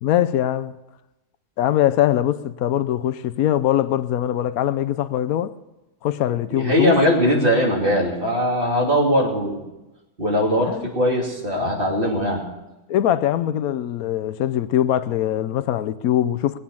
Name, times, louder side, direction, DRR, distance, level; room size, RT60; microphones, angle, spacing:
voice 1, 0.0-0.7 1.6-5.6 6.0-7.0 10.6-10.9 12.9-16.6, left 11 dB, 90° left, 1.1 m, -22 dB
voice 2, 6.5-9.6 10.2-12.4, equal, 40° right, 3.1 m, -20 dB
20.0 x 8.4 x 7.1 m
omnidirectional pair, 1.5 m